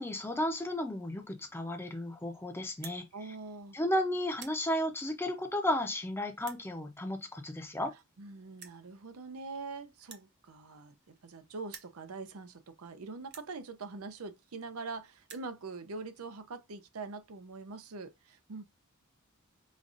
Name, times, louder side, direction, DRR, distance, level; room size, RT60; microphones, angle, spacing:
voice 1, 0.0-3.1 3.7-7.9, left 1 dB, 10° left, 0.6 m, -33 dB
sound 1, 2.8-3.0 3.7-3.9 4.2-4.6 5.4-5.5 6.4-6.6 7.7-7.8 8.0-8.1 8.6-8.8 10.0-11.3 11.6-12.0 12.7-12.8 13.3-13.5 14.4-14.5 14.7-14.8 15.1-15.5, right 7 dB, 50° right, 0.6 m, -50 dB
voice 2, 3.1-3.8 8.2-18.7, right 4 dB, 90° right, 0.6 m, -43 dB
5.1 x 2.4 x 2.5 m
head